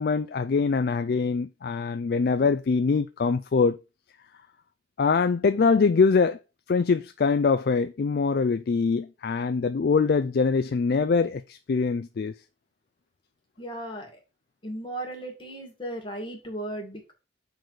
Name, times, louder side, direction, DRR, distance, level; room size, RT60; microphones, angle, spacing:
voice 1, 0.0-3.8 5.0-6.4 6.7-12.3, left 4 dB, 55° left, 0.4 m, -23 dB
voice 2, 13.6-14.1 14.6-17.1, right 1 dB, 25° left, 1.9 m, -36 dB
6.5 x 4.0 x 4.6 m
head